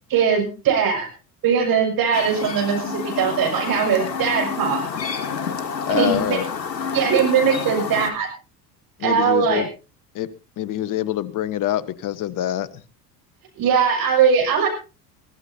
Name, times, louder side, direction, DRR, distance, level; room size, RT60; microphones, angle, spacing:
voice 1, 0.1-1.1 1.4-4.8 5.9-6.4 6.9-8.3 9.0-9.6 13.6-14.7, right 7 dB, 45° right, 3 dB, 6.3 m, -20 dB
Chirp tweet, 2.1-8.1, left 6 dB, 80° left, 1.5 m, -29 dB
voice 2, 5.9-6.5 9.0-9.7 10.1-10.3 10.6-12.7, left 12 dB, 40° left, 16 dB, 1.2 m, -25 dB
22.5 x 15.0 x 2.8 m, 0.33 s
figure-of-eight pair, 70°, 49 cm